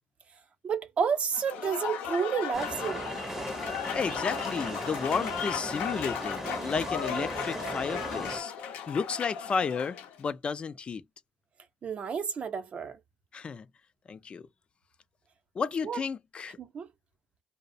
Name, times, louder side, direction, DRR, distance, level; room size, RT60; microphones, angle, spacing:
voice 1, 0.6-3.1 11.8-13.0 15.8-16.0 16.6-16.9, right 6 dB, 50° right, 0.6 m, -30 dB
Applause / Crowd, 1.3-10.2, left 8 dB, 85° left, 0.6 m, -36 dB
sound 1, 2.5-8.4, right 1 dB, 15° right, 0.7 m, -37 dB
voice 2, 3.9-11.0 13.3-13.7 14.1-14.5 15.6-16.6, left 5 dB, 40° left, 0.4 m, -33 dB
2.4 x 2.0 x 2.6 m
cardioid pair, 90°, 3 cm